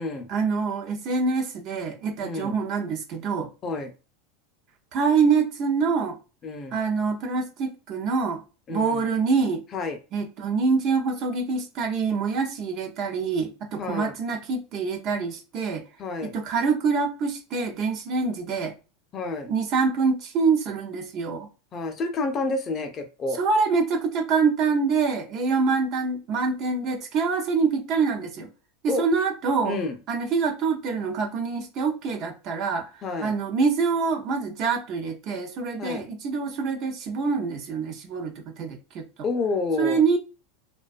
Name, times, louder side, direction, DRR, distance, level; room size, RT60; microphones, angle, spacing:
voice 1, 0.3-3.5 4.9-6.2 6.7-8.4 8.7-9.6 10.1-15.8 16.2-18.7 19.5-21.5 23.4-28.5 28.8-29.8 30.1-32.9 33.2-39.0 39.8-40.2, right 5 dB, 45° right, 0.6 m, -25 dB
voice 2, 2.2-2.6 3.6-3.9 6.4-6.8 8.7-9.1 9.7-10.0 13.8-14.1 16.0-16.3 19.1-19.5 21.7-23.4 28.9-29.0 29.6-29.9 33.0-33.3 35.8-36.0 39.2-40.0, left 3 dB, 30° left, 0.5 m, -29 dB
2.4 x 2.2 x 2.4 m
supercardioid pair, 125°, 0 cm